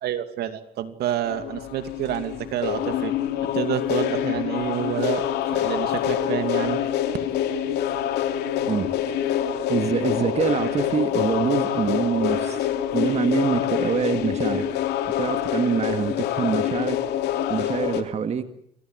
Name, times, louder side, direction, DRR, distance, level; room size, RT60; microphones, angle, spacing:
voice 1, 0.0-3.1 3.5-6.8, right 11 dB, 70° right, 10 dB, 2.6 m, -28 dB
sound 1, 1.2-18.0, left 10 dB, 80° left, 2.9 m, -26 dB
voice 2, 8.6-9.3 9.7-14.7 15.2-17.0 17.5-18.5, right 7 dB, 40° right, 9 dB, 2.0 m, -25 dB
29.0 x 22.5 x 7.9 m, 0.70 s
cardioid pair, 110°, 17 cm